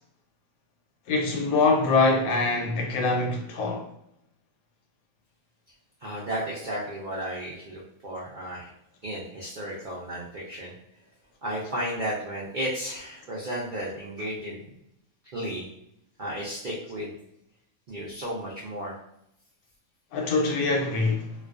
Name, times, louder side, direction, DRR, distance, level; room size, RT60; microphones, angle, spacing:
voice 1, 1.1-3.8 20.1-21.2, left 3 dB, 90° left, 1.1 m, -24 dB
voice 2, 6.0-8.7 9.0-10.7 11.4-14.7 15.3-15.7 16.2-17.2 17.9-19.0, right 1 dB, 75° right, 0.4 m, -33 dB
2.3 x 2.3 x 2.3 m
omnidirectional pair, 1.5 m